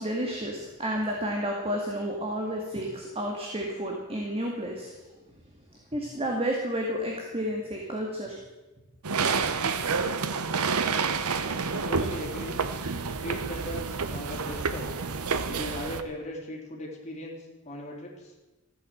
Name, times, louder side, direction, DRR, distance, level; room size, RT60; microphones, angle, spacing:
voice 1, 0.0-4.9 5.9-8.4, equal, 25° right, 0 dB, 2.0 m, -31 dB
sound 1, 9.0-16.0, right 5 dB, 85° right, 0.9 m, -29 dB
voice 2, 11.7-12.6 13.2-14.8 15.5-17.4 17.6-18.1, left 1 dB, 30° left, -2 dB, 3.8 m, -38 dB
15.0 x 9.4 x 7.8 m, 1.1 s
head